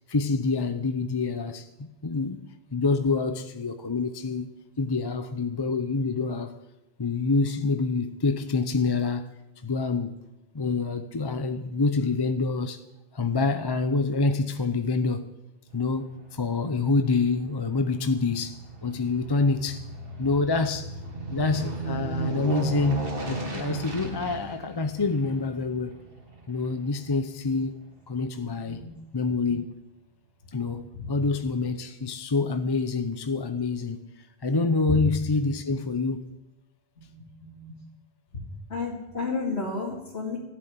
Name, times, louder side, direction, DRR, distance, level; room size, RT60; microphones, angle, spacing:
voice 1, 0.1-2.4 2.7-4.5 4.8-6.6 7.0-9.3 9.6-10.1 10.5-12.8 13.1-15.3 15.7-19.8 20.2-20.9 21.3-26.0 26.5-27.8 28.1-28.9 29.1-29.7 30.5-34.1 34.4-36.3, left 3 dB, 25° left, 0.7 m, -27 dB
Aircraft, 15.7-28.2 28.6-28.7, right 2 dB, 60° right, 2.2 m, -36 dB
voice 2, 37.0-37.7 38.3-38.4 38.7-40.4, left 3 dB, 80° left, 2.7 m, -32 dB
14.0 x 7.7 x 9.5 m
omnidirectional pair, 1.1 m